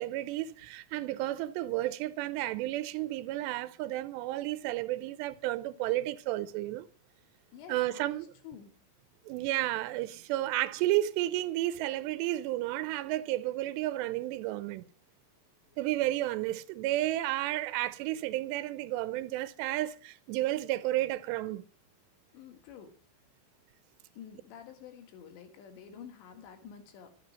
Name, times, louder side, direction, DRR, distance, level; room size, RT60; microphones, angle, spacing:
voice 1, 0.0-6.9 7.7-8.3 9.3-14.8 15.8-21.6, right 15 dB, 85° right, 2.9 m, -32 dB
voice 2, 7.5-8.7 15.7-15.8 22.3-23.0 24.2-27.2, left 8 dB, 85° left, 4.0 m, -49 dB
12.5 x 11.0 x 6.3 m
omnidirectional pair, 4.9 m